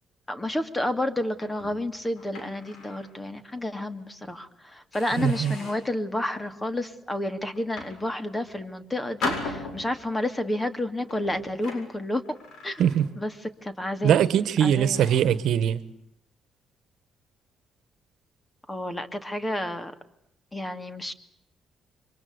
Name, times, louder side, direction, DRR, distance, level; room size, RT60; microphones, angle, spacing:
voice 1, 0.3-12.4 12.6-12.8 13.2-13.3 13.6-14.2 14.6-15.0 18.7-19.9 20.5-21.1, left 1 dB, 15° left, 2.5 m, -30 dB
sound 1, 1.3-3.1 3.6-3.7 4.3-4.5 4.9-6.0 6.5-6.9 7.5-8.6 9.2-10.2 11.0-13.3 13.6-13.9 14.5-14.6 14.9-15.4, left 3 dB, 80° left, 6.9 m, -38 dB
voice 2, 5.2-5.5 12.8-13.1 14.0-15.8, right 9 dB, 75° right, 1.3 m, -21 dB
27.0 x 24.0 x 8.1 m
cardioid pair, 90°, 0 cm